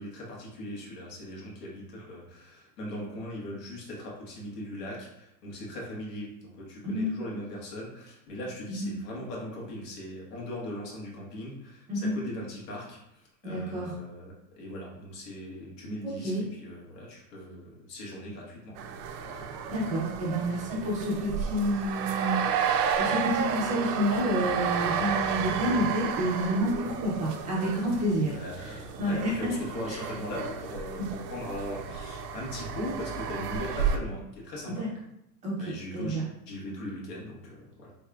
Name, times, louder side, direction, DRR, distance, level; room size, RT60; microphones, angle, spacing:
voice 1, 0.0-18.8 19.2-19.5 28.2-34.8 35.6-37.9, left 1 dB, 75° left, -3 dB, 1.4 m, -39 dB
voice 2, 13.4-13.9 16.0-16.4 19.7-22.6 22.9-29.6 29.9-30.0 31.0-31.1 34.8-34.9 35.4-36.2, equal, 15° right, -5 dB, 0.4 m, -29 dB
sound 1, 18.8-34.0, right 7 dB, 70° right, 0.6 m, -32 dB
3.6 x 3.4 x 2.2 m, 0.83 s
supercardioid pair, 155°, 48 cm